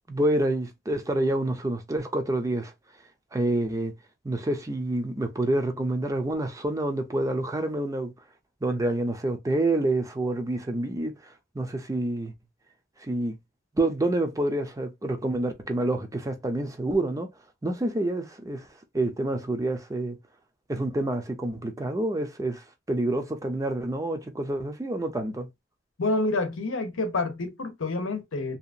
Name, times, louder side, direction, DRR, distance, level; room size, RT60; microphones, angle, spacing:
voice 1, 0.1-2.7 3.3-3.9 4.2-8.1 8.6-11.2 11.5-12.3 13.0-13.4 13.8-17.3 17.6-18.7 18.9-20.2 20.7-25.5, right 1 dB, 15° right, 0.5 m, -27 dB
voice 2, 26.0-28.6, left 2 dB, 90° left, 0.8 m, -28 dB
2.8 x 2.3 x 2.4 m
head